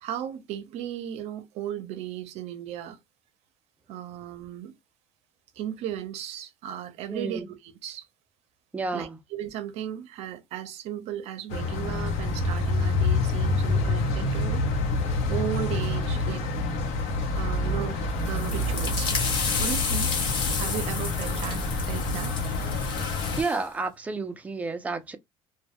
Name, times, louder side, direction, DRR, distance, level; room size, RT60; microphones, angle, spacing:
voice 1, 0.0-3.0 3.9-4.7 5.6-8.1 8.9-14.6 15.3-16.4 17.3-18.0 18.3-19.1 19.6-20.1 20.6-22.8, right 11 dB, 65° right, 0.5 m, -36 dB
voice 2, 7.1-7.5 8.7-9.2 23.4-25.2, right 3 dB, 10° right, 0.4 m, -31 dB
sound 1, 11.5-23.4, left 2 dB, 70° left, 0.7 m, -27 dB
sound 2, 18.2-23.6, left 4 dB, 40° left, 0.8 m, -32 dB
2.1 x 2.0 x 2.8 m
cardioid pair, 150°, 12 cm